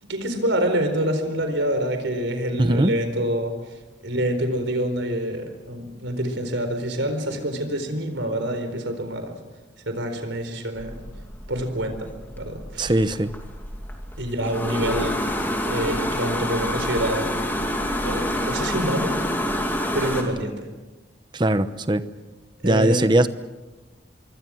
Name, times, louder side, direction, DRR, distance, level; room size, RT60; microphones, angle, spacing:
voice 1, 0.0-3.7 4.0-9.4 9.9-11.0 11.5-12.1 12.4-12.9 14.2-17.4 18.0-19.2 19.9-20.7 22.6-23.1, right 1 dB, 80° right, 4.3 m, -26 dB
voice 2, 2.6-2.9 12.8-13.3 21.3-22.1 22.6-23.3, right 1 dB, 25° right, 0.9 m, -20 dB
sound 1, 10.8-20.2, left 1 dB, 10° left, 2.7 m, -28 dB
25.5 x 23.5 x 6.4 m
head